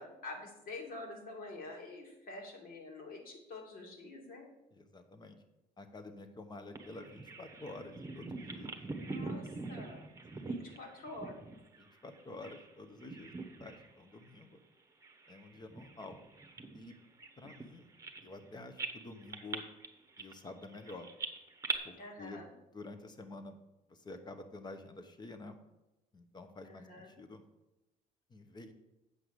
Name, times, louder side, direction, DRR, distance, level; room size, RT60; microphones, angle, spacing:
voice 1, 0.0-4.5 8.9-10.0 10.4-11.4 22.0-22.5 26.6-27.1, left 2 dB, 60° left, 0 dB, 2.6 m, -47 dB
voice 2, 4.7-5.4 5.8-8.8 10.3-10.5 11.8-14.6 15.3-16.2 16.7-16.9 17.4-17.9 18.2-19.6 20.2-21.1 21.8-22.4 22.7-23.6 23.9-25.6 26.1-27.4 28.3-28.7, left 2 dB, 25° left, 8 dB, 1.1 m, -49 dB
Bird vocalization bird call bird song, 6.8-12.7 13.0-13.9 14.2-14.4 15.0-18.5 18.8-21.8, right 3 dB, 20° right, 1.1 m, -43 dB
8.2 x 5.7 x 6.6 m, 0.96 s
cardioid pair, 110°, 17 cm